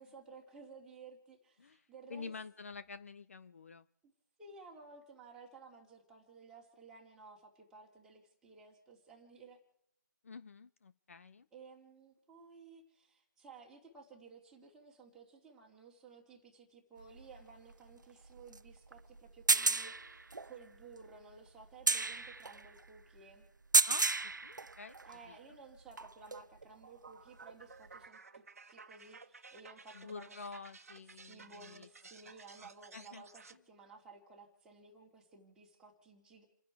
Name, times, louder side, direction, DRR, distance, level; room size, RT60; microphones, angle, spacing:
voice 1, 0.0-2.3 4.4-9.6 11.5-23.5 25.0-28.4 28.7-30.4 31.2-36.4, right 4 dB, 5° right, -2 dB, 2.6 m, -56 dB
voice 2, 1.6-3.9 10.2-11.5 23.8-25.0 25.3-25.4 29.9-31.9 32.6-33.2, left 4 dB, 45° left, 12 dB, 0.7 m, -49 dB
sound 1, 17.0-25.3 25.8-26.6 27.9-28.0, right 3 dB, 75° right, 0.7 m, -33 dB
sound 2, 26.6-33.6, right 4 dB, 50° right, 1.4 m, -55 dB
30.0 x 10.0 x 4.7 m, 0.78 s
figure-of-eight pair, 160°, 10 cm